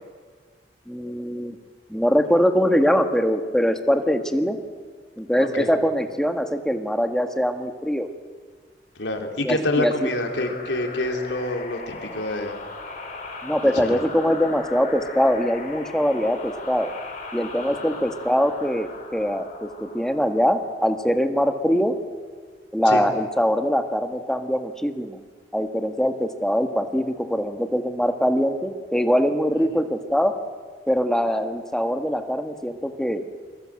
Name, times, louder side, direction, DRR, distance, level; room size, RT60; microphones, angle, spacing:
voice 1, 0.9-1.6 1.9-4.6 5.2-8.1 9.4-10.1 13.4-16.9 17.3-21.9 22.7-25.2 25.5-30.3 30.9-33.2, equal, 5° left, 6 dB, 1.7 m, -22 dB
voice 2, 9.0-12.5 13.9-14.0 17.8-17.9 22.9-23.0 29.7-29.8, left 2 dB, 85° left, 3 dB, 3.8 m, -27 dB
sound 1, 9.8-21.2, left 3 dB, 45° left, 4.5 m, -38 dB
29.0 x 23.0 x 7.8 m, 1.5 s
head